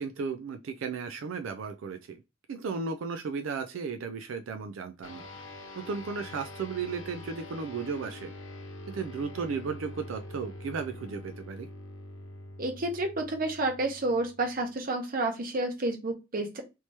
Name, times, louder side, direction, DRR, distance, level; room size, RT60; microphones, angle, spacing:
voice 1, 0.0-2.2 2.5-5.3 5.7-8.3 8.9-11.7, right 5 dB, 85° right, 0.4 m, -35 dB
sound 1, 5.0-14.8, left 1 dB, 80° left, 0.8 m, -45 dB
voice 2, 12.6-16.6, right 2 dB, 50° right, 0.9 m, -30 dB
3.0 x 2.8 x 3.2 m
head